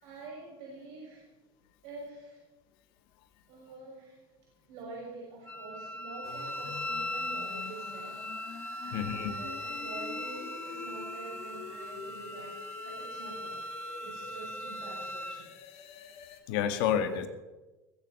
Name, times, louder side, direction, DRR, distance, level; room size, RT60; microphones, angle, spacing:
voice 1, 0.0-1.3 1.8-2.4 3.5-4.2 4.7-8.2 8.8-13.7 14.0-15.6, right 3 dB, 70° right, -4 dB, 6.6 m, -46 dB
Wind instrument woodwind instrument, 5.5-15.4, left 1 dB, 15° left, 2.8 m, -39 dB
sound 1, 6.2-16.4, left 6 dB, 60° left, 2.4 m, -47 dB
voice 2, 8.9-9.3 16.5-17.3, left 9 dB, 75° left, 8 dB, 2.0 m, -29 dB
21.0 x 8.0 x 6.8 m, 1.1 s
supercardioid pair, 90°, 12 cm